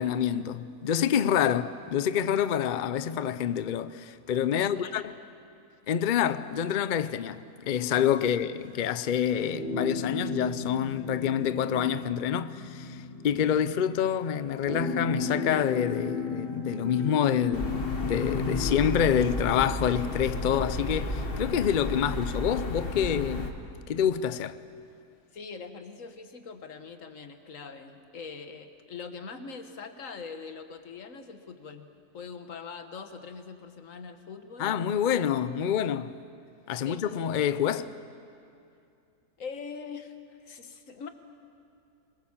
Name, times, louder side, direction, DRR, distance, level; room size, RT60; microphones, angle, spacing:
voice 1, 0.0-5.1 5.9-13.0 13.2-23.5 23.9-24.6 34.6-36.1 36.7-37.9, left 9 dB, 85° left, 0.4 m, -27 dB
voice 2, 4.5-5.1 8.2-8.3 25.3-31.9 32.1-34.8 35.1-35.2 36.8-37.0 39.4-40.1 40.4-41.1, left 5 dB, 55° left, 1.6 m, -42 dB
sound 1, 9.5-19.7, left 4 dB, 50° right, 3.2 m, -35 dB
sound 2, 17.5-23.5, left 1 dB, 35° left, 1.7 m, -33 dB
24.0 x 22.0 x 7.3 m
omnidirectional pair, 1.7 m